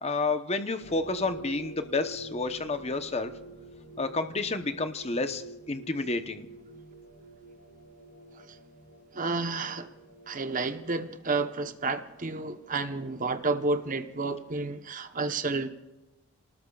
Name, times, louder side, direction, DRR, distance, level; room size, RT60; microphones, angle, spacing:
voice 1, 0.0-3.3 4.0-6.5, left 3 dB, 30° left, 8 dB, 1.0 m, -30 dB
sound 1, 0.8-14.0, right 2 dB, 90° left, 3.6 m, -48 dB
voice 2, 9.1-9.9 10.3-15.7, right 3 dB, 40° right, 8 dB, 1.0 m, -31 dB
29.5 x 19.5 x 2.4 m, 1.0 s
head